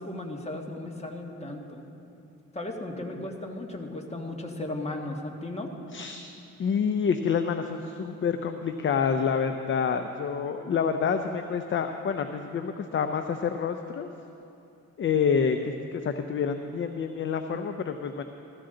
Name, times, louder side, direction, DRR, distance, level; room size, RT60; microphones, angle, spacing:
voice 1, 0.0-1.8 2.5-5.7, left 1 dB, 20° left, 1 dB, 1.8 m, -36 dB
voice 2, 5.9-6.3 6.6-14.1 15.0-18.2, left 6 dB, 40° left, 7 dB, 0.6 m, -28 dB
16.5 x 14.0 x 3.9 m, 2.7 s
cardioid pair, 90°, 30 cm